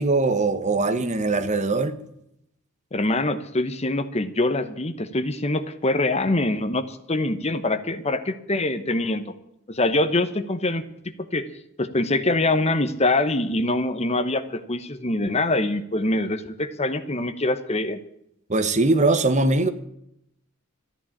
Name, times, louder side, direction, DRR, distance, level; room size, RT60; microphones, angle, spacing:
voice 1, 0.0-2.0 18.5-19.7, right 3 dB, 35° right, 1.1 m, -21 dB
voice 2, 2.9-9.3 9.7-10.8 11.3-11.5 11.8-18.0, left 2 dB, 30° left, 1.1 m, -24 dB
14.0 x 10.5 x 8.6 m
head